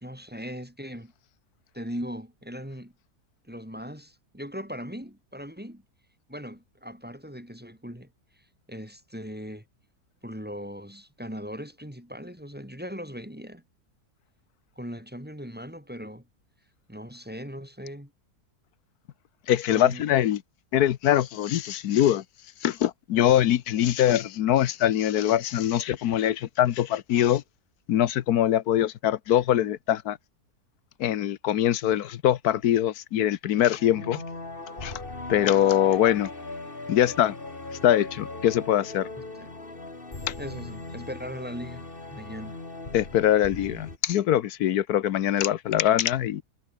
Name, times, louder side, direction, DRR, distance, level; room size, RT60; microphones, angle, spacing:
voice 1, 0.0-1.1 1.7-2.9 3.5-5.8 6.3-8.1 8.7-9.6 10.2-13.6 14.8-16.2 16.9-18.1 19.7-20.1 34.0-34.1 39.2-39.5 40.4-42.6, equal, 5° right, 3.0 m, -39 dB
voice 2, 19.5-20.4 20.7-22.2 22.6-27.4 27.9-30.2 31.0-34.2 34.8-35.0 35.3-36.3 36.9-37.3 37.8-39.1 40.3-40.4 42.9-46.4, left 11 dB, 85° left, 1.3 m, -23 dB
sound 1, 33.7-44.0, left 2 dB, 35° left, 3.5 m, -39 dB
omnidirectional pair, 1.6 m